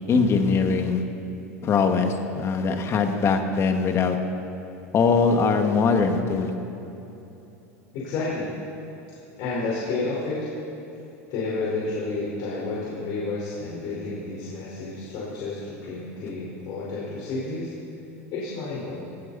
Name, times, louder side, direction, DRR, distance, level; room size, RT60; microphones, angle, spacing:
voice 1, 0.1-1.0 1.6-4.2 4.9-6.5, left 5 dB, 35° left, 5 dB, 1.9 m, -21 dB
voice 2, 7.9-8.5 9.1-10.5 11.3-17.8 18.3-19.0, left 3 dB, 55° left, -6 dB, 4.7 m, -30 dB
19.5 x 17.0 x 4.2 m, 3.0 s
hypercardioid pair, 105°, 8 cm